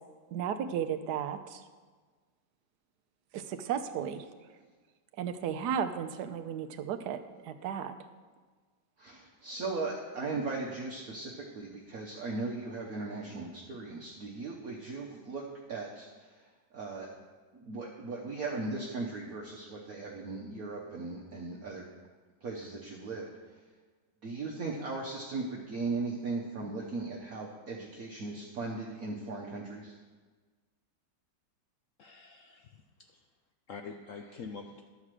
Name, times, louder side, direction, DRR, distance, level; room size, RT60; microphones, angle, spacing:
voice 1, 0.3-1.6 3.3-4.2 5.2-7.9, right 8 dB, 75° right, 8 dB, 1.2 m, -34 dB
voice 2, 9.0-15.4 15.7-16.1 16.7-17.1 17.5-21.8 22.4-23.3 24.2-29.9, right 3 dB, 55° right, -2 dB, 1.4 m, -37 dB
voice 3, 32.0-33.2 33.7-34.8, left 5 dB, 65° left, 4 dB, 0.8 m, -46 dB
11.5 x 4.8 x 7.5 m, 1.4 s
omnidirectional pair, 1.9 m